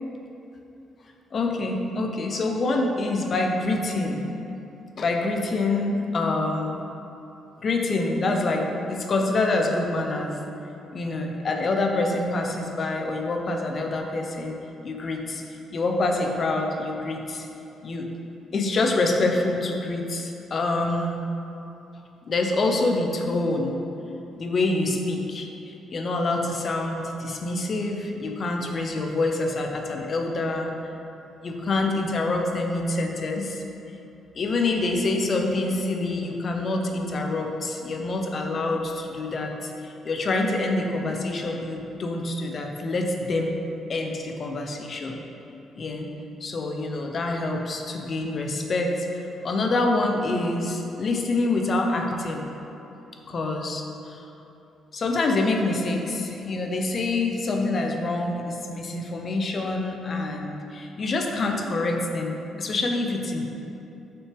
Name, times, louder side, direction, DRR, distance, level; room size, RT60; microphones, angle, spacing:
voice 1, 1.3-4.2 5.0-6.8 7.6-10.4 10.9-15.4 15.7-17.5 17.8-18.1 18.5-21.2 22.2-23.8 24.4-30.7 31.4-33.6 34.4-43.5 43.9-45.2 45.8-46.1 46.4-52.5 53.3-54.3 54.9-63.5, left 2 dB, 45° left, 2 dB, 0.7 m, -26 dB
6.5 x 6.0 x 3.5 m, 2.9 s
cardioid pair, 90°, 0 cm